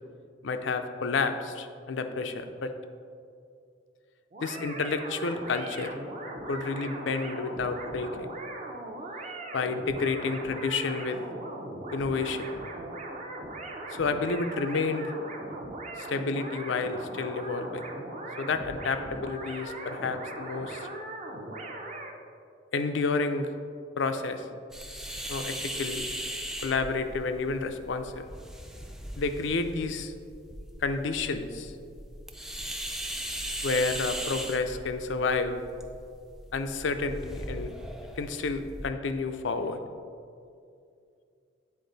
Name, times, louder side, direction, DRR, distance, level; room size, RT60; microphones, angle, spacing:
voice 1, 0.4-2.7 4.4-5.9 6.5-8.3 9.5-11.2 11.9-12.5 13.9-15.1 16.0-17.8 18.4-20.8 22.7-23.5 24.0-24.4 25.3-26.1 26.6-28.2 29.2-30.1 30.8-31.7 33.6-35.6 36.5-37.7 38.2-39.8, left 4 dB, 70° left, 8 dB, 0.5 m, -30 dB
sound 1, 4.3-22.1, right 2 dB, 40° right, 0.7 m, -39 dB
sound 2, 24.7-38.9, equal, 5° right, 0.4 m, -39 dB
8.5 x 4.3 x 3.9 m, 2.4 s
head